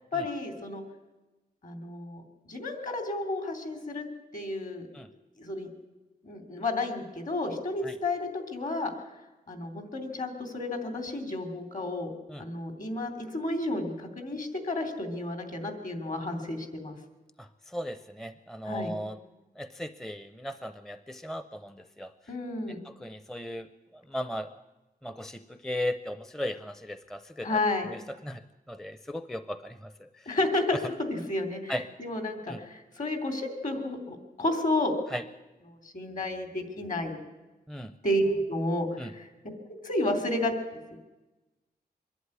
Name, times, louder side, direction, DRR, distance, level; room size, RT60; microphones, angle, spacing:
voice 1, 0.1-0.8 1.6-4.0 4.3-4.8 5.4-5.7 6.2-8.9 9.5-12.1 12.4-16.9 18.6-18.9 22.3-22.8 27.4-27.9 30.3-34.9 35.7-37.2 38.0-39.3 39.7-40.5 40.9-41.0, left 1 dB, 50° left, 6 dB, 3.1 m, -31 dB
voice 2, 17.4-19.2 19.6-22.1 22.8-23.7 24.1-24.5 25.0-27.6 27.9-28.4 28.7-30.4 31.7-31.8 32.5-32.6 35.1-35.2 37.7-37.9 39.0-39.1, equal, 5° left, 11 dB, 0.6 m, -37 dB
23.5 x 11.5 x 9.7 m, 1.1 s
wide cardioid pair, 125°, 17 cm